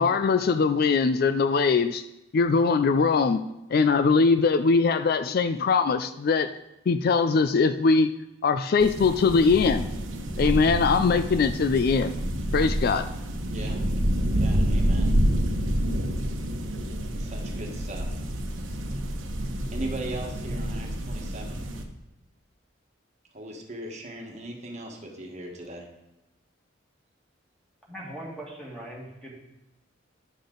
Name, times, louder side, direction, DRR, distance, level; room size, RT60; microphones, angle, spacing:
voice 1, 0.0-2.0 2.3-3.4 3.7-6.5 6.9-8.1 8.4-9.9 10.4-12.2 12.5-13.1, left 4 dB, 50° left, 10 dB, 0.3 m, -21 dB
sound 1, 8.8-21.8, equal, 85° right, 1.1 m, -28 dB
voice 2, 14.3-15.1 17.2-18.2 19.7-21.6 23.3-25.9, right 1 dB, 35° right, 0 dB, 1.4 m, -38 dB
voice 3, 27.9-29.3, right 1 dB, 5° left, -5 dB, 2.4 m, -40 dB
10.5 x 7.0 x 3.9 m, 0.94 s
head